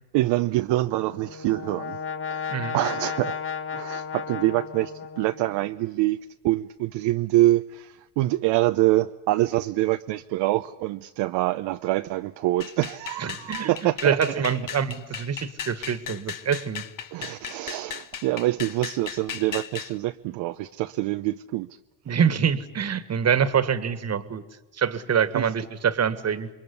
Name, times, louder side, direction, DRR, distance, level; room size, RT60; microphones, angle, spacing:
voice 1, 0.1-2.0 2.3-3.4 3.7-6.2 6.4-14.2 17.1-21.7 25.3-25.5, right 17 dB, 60° right, 0.9 m, -25 dB
Brass instrument, 0.9-5.7, left 7 dB, 25° left, 1.3 m, -34 dB
sound 1, 12.6-20.0, left 8 dB, 40° left, 1.4 m, -37 dB
voice 2, 13.2-13.7 14.0-16.8 22.1-24.4 24.7-26.5, right 7 dB, 30° right, 1.9 m, -25 dB
28.0 x 22.0 x 9.7 m
supercardioid pair, 85°, 48 cm